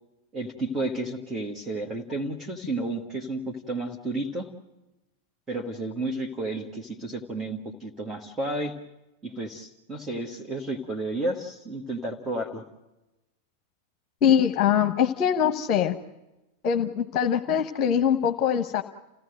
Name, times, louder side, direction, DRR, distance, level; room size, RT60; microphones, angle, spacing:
voice 1, 0.3-4.5 5.5-8.7 9.2-12.6, right 2 dB, 15° right, 0 dB, 1.9 m, -32 dB
voice 2, 14.2-16.0 16.6-18.8, left 8 dB, 35° left, 6 dB, 1.1 m, -23 dB
29.5 x 16.5 x 7.8 m, 1.0 s
figure-of-eight pair, 90°, 0 cm